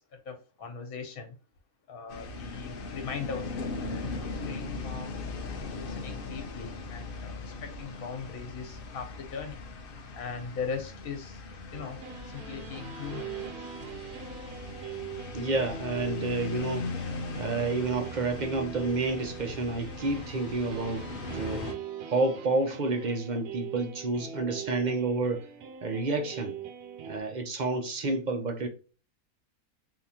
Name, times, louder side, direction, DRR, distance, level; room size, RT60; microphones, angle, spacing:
voice 1, 0.3-1.3 1.9-4.0 4.5-5.1 5.7-9.6 10.1-11.4 11.7-12.0 12.3-13.6, left 5 dB, 70° left, 1.4 m, -39 dB
sound 1, 2.1-21.7, left 3 dB, 55° left, 0.6 m, -39 dB
sound 2, 11.7-27.2, right 8 dB, 80° right, 1.1 m, -42 dB
voice 2, 15.3-21.1 21.3-21.7 22.1-25.5 25.8-26.5 27.1-28.7, right 3 dB, 45° right, 0.6 m, -30 dB
3.7 x 2.8 x 2.8 m
omnidirectional pair, 1.6 m